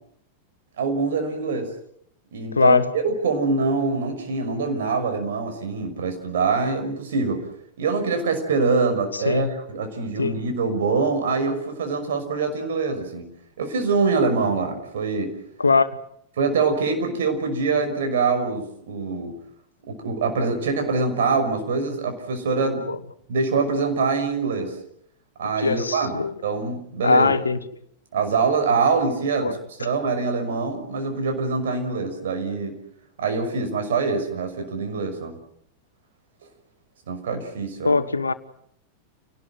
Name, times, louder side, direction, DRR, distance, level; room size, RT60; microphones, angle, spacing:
voice 1, 0.8-1.7 2.3-7.4 7.8-13.3 13.6-15.3 16.4-19.3 19.9-22.8 23.3-24.7 25.4-26.2 26.4-27.4 28.1-32.7 33.2-35.3 37.1-38.0, right 4 dB, 60° right, 5 dB, 5.9 m, -24 dB
voice 2, 2.5-2.9 9.2-9.5 10.2-10.4 15.6-15.9 22.6-22.9 25.6-26.4 27.0-27.6 29.4-29.5 37.8-38.3, left 4 dB, 75° left, 13 dB, 1.3 m, -20 dB
29.0 x 19.0 x 7.8 m, 0.70 s
figure-of-eight pair, 90°, 0 cm